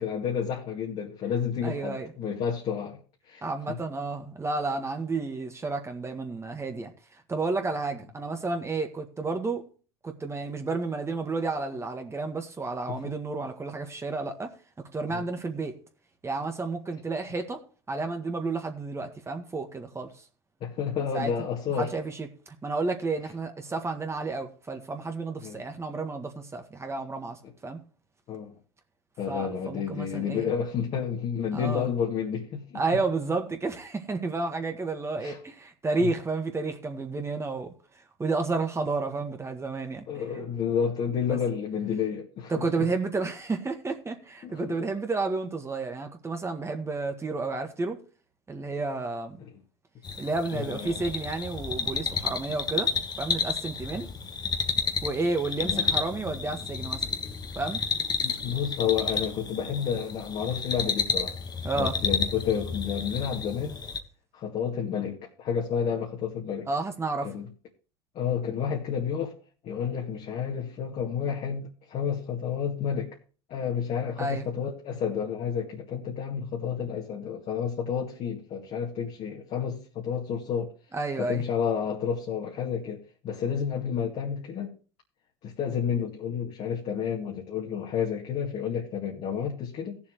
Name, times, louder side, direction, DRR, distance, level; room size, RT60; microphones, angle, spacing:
voice 1, 0.0-3.0 3.3-3.8 12.9-13.2 15.1-15.2 20.6-21.9 25.4-25.6 27.4-27.5 28.3-28.5 29.2-32.8 35.2-35.4 36.0-36.1 40.1-42.9 44.4-44.8 49.4-49.5 50.5-51.0 55.6-56.0 58.2-61.3 61.7-63.8 64.3-66.7 67.2-67.5 68.1-69.3 69.6-73.2 73.5-80.7 81.2-84.7 85.4-90.0, left 7 dB, 45° left, 2.2 m, -30 dB
voice 2, 1.6-2.1 3.4-9.6 10.0-15.8 16.2-17.6 17.9-20.2 21.1-21.3 21.8-27.8 29.3-30.5 31.5-31.9 32.7-37.7 38.2-40.1 41.3-41.4 42.5-48.0 48.5-49.4 50.2-52.9 53.2-54.1 55.0-57.1 57.5-57.8 61.6-61.9 66.7-67.3 74.2-74.5 80.9-81.4, right 3 dB, 20° right, 1.7 m, -31 dB
sound 1, 50.0-64.0, left 5 dB, 30° left, 1.5 m, -31 dB
18.0 x 7.2 x 3.1 m
hypercardioid pair, 80°, 15 cm